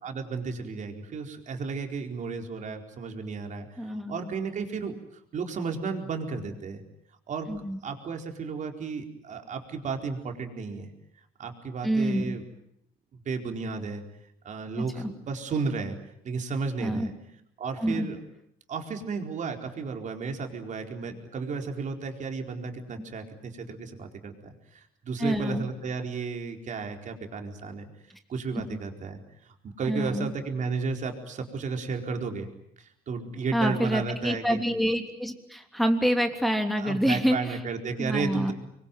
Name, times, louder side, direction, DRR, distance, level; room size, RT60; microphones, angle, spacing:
voice 1, 0.0-4.9 5.3-6.8 7.3-7.5 7.8-10.9 11.4-12.4 13.1-14.0 14.4-16.0 16.2-17.1 17.6-18.2 18.7-27.9 28.3-32.5 32.8-34.6 36.8-38.5, right 4 dB, 45° right, 4 dB, 4.5 m, -33 dB
voice 2, 3.8-4.3 7.5-7.8 11.8-12.3 14.8-15.1 16.8-17.1 17.8-18.1 25.2-25.6 28.7-28.8 29.9-30.3 33.5-37.6 38.0-38.5, equal, ahead, 4 dB, 3.1 m, -27 dB
26.0 x 22.5 x 9.2 m, 0.74 s
cardioid pair, 110°, 17 cm